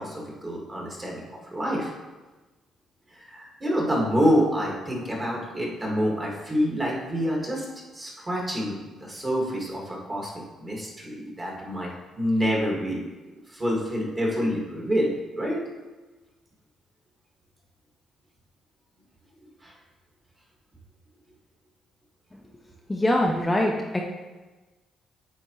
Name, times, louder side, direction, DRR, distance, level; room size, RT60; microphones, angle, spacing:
voice 1, 0.0-1.9 3.1-7.7 7.9-13.1 13.5-15.6 19.6-19.8, equal, 25° right, -2 dB, 1.9 m, -27 dB
voice 2, 22.9-24.0, left 1 dB, 15° left, -1 dB, 0.6 m, -23 dB
8.4 x 4.2 x 3.1 m, 1.2 s
cardioid pair, 90°, 0 cm